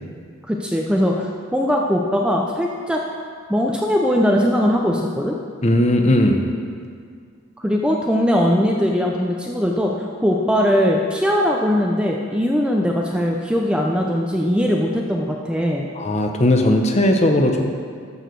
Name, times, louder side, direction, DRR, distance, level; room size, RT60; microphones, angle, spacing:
voice 1, 0.5-3.0 3.5-5.4 7.6-15.9, equal, 5° right, 0 dB, 0.5 m, -20 dB
voice 2, 5.6-6.4 16.0-17.6, left 1 dB, 30° left, 3 dB, 0.8 m, -17 dB
12.0 x 4.8 x 6.7 m, 2.1 s
head